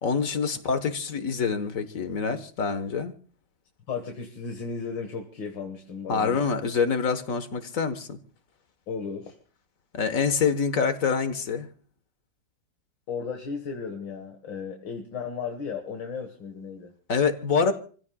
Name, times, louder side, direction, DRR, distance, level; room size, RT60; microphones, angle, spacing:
voice 1, 0.0-3.1 6.1-8.2 9.9-11.7 17.1-17.7, left 5 dB, 50° left, 1.6 m, -26 dB
voice 2, 3.9-6.4 8.9-9.3 13.1-16.9, left 5 dB, 80° left, 2.3 m, -35 dB
28.5 x 16.0 x 2.3 m
omnidirectional pair, 2.0 m